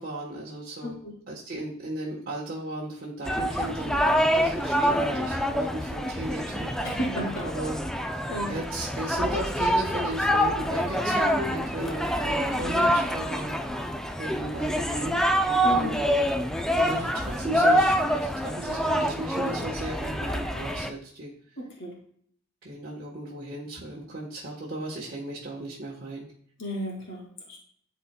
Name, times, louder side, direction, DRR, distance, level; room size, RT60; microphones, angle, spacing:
voice 1, 0.0-1.0 1.3-7.0 7.4-13.5 14.2-15.2 15.7-16.0 16.7-21.3 22.6-26.3, right 1 dB, 45° right, -5 dB, 1.2 m, -35 dB
voice 2, 0.8-1.1 6.8-7.5 8.3-8.5 15.6-16.0 21.6-21.9 26.6-27.6, equal, 65° left, -1 dB, 2.1 m, -33 dB
sound 1, 3.3-20.9, equal, 5° left, 0.4 m, -26 dB
11.5 x 4.2 x 2.3 m, 0.63 s
head